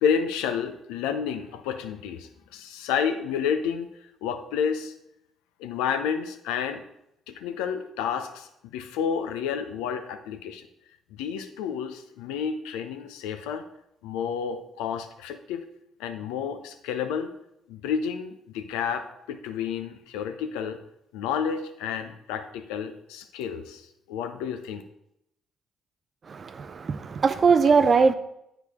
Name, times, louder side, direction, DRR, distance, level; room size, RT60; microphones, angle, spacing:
voice 1, 0.0-3.9 4.2-4.9 5.6-6.8 7.3-10.7 11.1-13.7 14.0-15.7 16.0-17.3 17.7-20.8 21.1-24.8, left 7 dB, 75° left, 0.5 m, -30 dB
voice 2, 26.3-28.1, right 5 dB, 45° right, 0.5 m, -21 dB
7.8 x 4.8 x 3.5 m
hypercardioid pair, 50°, 0 cm